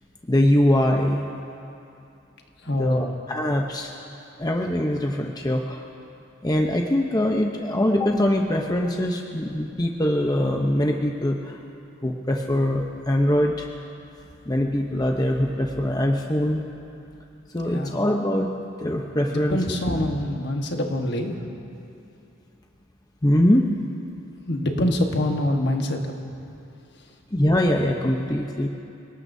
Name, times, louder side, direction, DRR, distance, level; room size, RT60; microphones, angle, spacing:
voice 1, 0.3-1.2 2.7-3.9 4.4-5.9 6.4-11.6 12.0-13.7 14.5-16.6 17.5-18.5 18.8-19.6 23.2-23.7 27.3-28.7, left 1 dB, 20° left, 1 dB, 0.8 m, -22 dB
voice 2, 2.6-3.1 17.7-18.0 19.3-21.4 24.4-26.1, left 1 dB, 55° left, 2 dB, 1.4 m, -25 dB
28.5 x 18.5 x 2.7 m, 2.7 s
head